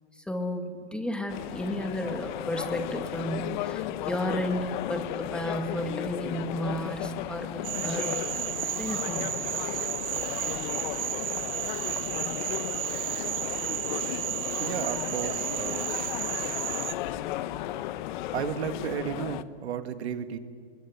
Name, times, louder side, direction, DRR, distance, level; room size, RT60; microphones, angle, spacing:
voice 1, 0.1-8.2 8.8-9.3, equal, 5° left, 5 dB, 1.7 m, -33 dB
sound 1, 1.3-19.4, left 13 dB, 45° left, 0.9 m, -34 dB
Cricket / Frog, 7.6-16.9, right 15 dB, 55° right, 1.0 m, -33 dB
voice 2, 14.6-15.9 18.3-20.4, right 9 dB, 75° right, 9 dB, 1.8 m, -33 dB
25.0 x 22.0 x 9.5 m, 2.1 s
hypercardioid pair, 155°, 33 cm